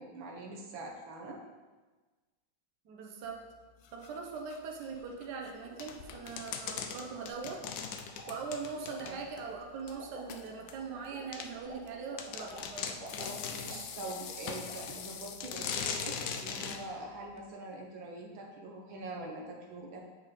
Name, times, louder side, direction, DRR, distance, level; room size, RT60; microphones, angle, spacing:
voice 1, 0.0-1.4 9.0-9.2 13.2-20.0, right 2 dB, 90° right, -1 dB, 1.9 m, -44 dB
voice 2, 2.8-3.4 3.9-7.6 8.3-13.1, right 5 dB, 65° right, 1 dB, 1.3 m, -41 dB
sound 1, 3.2-17.5, left 7 dB, 90° left, 1.4 m, -51 dB
sound 2, 5.6-15.0, equal, 15° right, 0.5 m, -51 dB
sound 3, 5.8-9.4 9.9-10.0 10.7-10.8 11.3-11.5 11.9-12.0 12.2-13.8 14.5-15.0 15.4-16.8, left 7 dB, 75° left, 1.2 m, -39 dB
8.0 x 5.2 x 3.8 m, 1.3 s
omnidirectional pair, 2.1 m